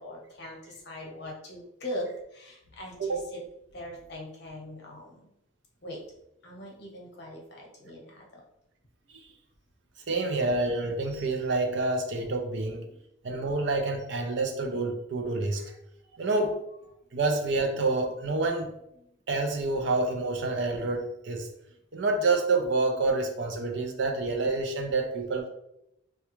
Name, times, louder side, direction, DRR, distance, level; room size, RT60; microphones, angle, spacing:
voice 1, 0.0-3.4 3.7-5.3 5.8-6.0 6.4-8.4 12.9-13.0 16.9-17.0 19.0-19.1, left 1 dB, 55° left, -1 dB, 0.8 m, -41 dB
voice 2, 10.1-12.9 13.2-15.6 16.2-16.6 17.1-18.7 19.3-21.5 21.9-25.5, right 3 dB, 55° right, 4 dB, 0.5 m, -28 dB
3.3 x 2.3 x 3.0 m, 0.81 s
head